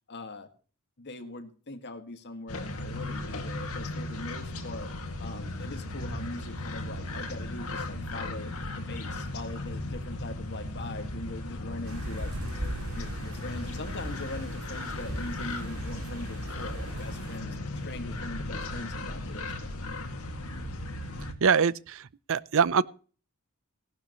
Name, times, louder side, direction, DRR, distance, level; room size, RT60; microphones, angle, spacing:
voice 1, 0.1-0.5 1.0-4.9 5.2-8.5 8.8-12.3 12.9-19.7, left 2 dB, 50° left, 1.9 m, -41 dB
sound 1, 2.5-21.3, left 2 dB, 85° left, 2.0 m, -36 dB
sound 2, 11.8-17.4, right 1 dB, 80° right, 3.8 m, -39 dB
voice 2, 21.4-22.8, right 6 dB, 65° right, 0.6 m, -24 dB
17.0 x 12.0 x 3.1 m
head